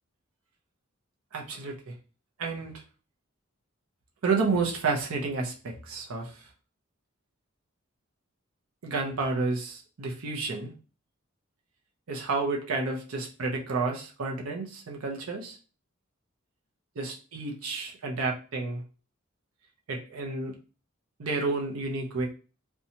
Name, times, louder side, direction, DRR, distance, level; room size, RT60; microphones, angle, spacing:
voice 1, 1.3-1.9 2.4-2.8 4.2-6.4 8.8-10.7 12.1-15.6 17.0-18.8 19.9-20.5 21.2-22.3, right 3 dB, 85° right, 0 dB, 0.6 m, -30 dB
2.7 x 2.2 x 2.8 m, 0.36 s
head